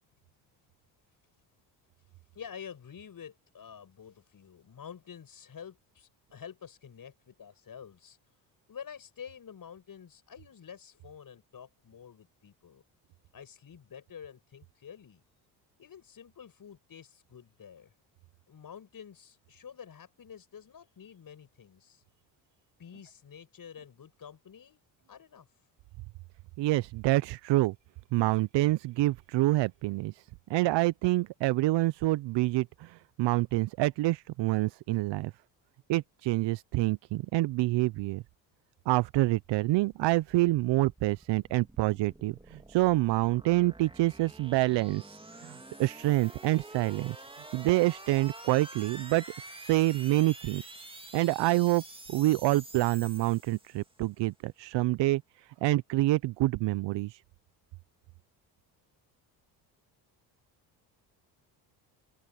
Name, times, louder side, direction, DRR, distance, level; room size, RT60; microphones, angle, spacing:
voice 1, 2.3-8.2 8.7-12.8 13.3-15.2 15.8-17.9 18.5-22.0 22.8-24.8 25.1-25.5, left 7 dB, 45° left, 7.2 m, -48 dB
voice 2, 26.6-27.7 28.1-30.2 30.5-35.3 35.9-38.2 38.9-47.2 47.5-50.6 51.1-51.8 52.1-55.2 55.6-57.2, right 18 dB, 65° right, 0.7 m, -27 dB
sound 1, 39.9-54.0, right 2 dB, 10° right, 2.6 m, -48 dB
supercardioid pair, 75°, 46 cm